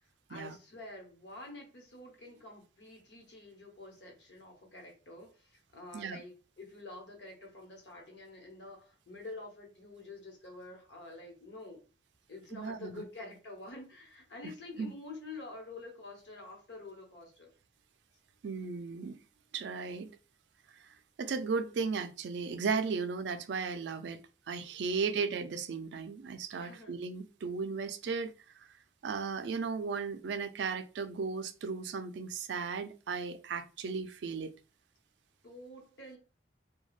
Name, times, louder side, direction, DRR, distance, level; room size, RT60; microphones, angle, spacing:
voice 1, 0.3-11.8 12.3-17.5 24.8-25.3 26.6-26.9 35.4-36.2, left 2 dB, 75° left, 1.0 m, -48 dB
voice 2, 12.5-13.0 14.8-14.9 18.4-19.2 19.5-20.2 21.2-24.2 24.5-28.3 29.0-34.6, right 5 dB, 75° right, 0.3 m, -35 dB
2.4 x 2.2 x 3.1 m
head